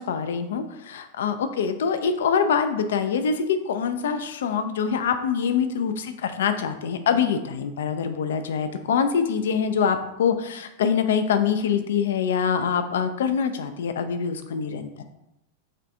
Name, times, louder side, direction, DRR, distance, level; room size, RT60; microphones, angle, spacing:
voice 1, 0.0-15.0, left 6 dB, 60° left, 9 dB, 0.4 m, -24 dB
3.8 x 3.2 x 3.4 m, 0.87 s
figure-of-eight pair, 90°, 0 cm